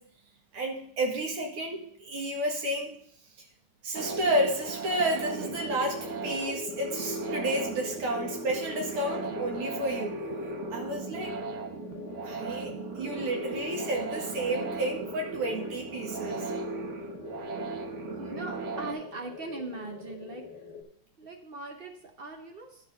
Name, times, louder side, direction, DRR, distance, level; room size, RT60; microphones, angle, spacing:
voice 1, 0.5-3.0 3.8-10.2 10.7-11.3 12.1-16.5, right 1 dB, 85° right, 1 dB, 2.6 m, -31 dB
sound 1, 3.9-18.9, right 4 dB, 50° right, 1.0 m, -37 dB
sound 2, 5.3-20.8, left 6 dB, 55° left, 1.3 m, -43 dB
voice 2, 18.2-20.4 21.2-22.8, right 2 dB, 65° right, 3 dB, 0.5 m, -40 dB
10.5 x 4.2 x 6.8 m, 0.65 s
omnidirectional pair, 2.4 m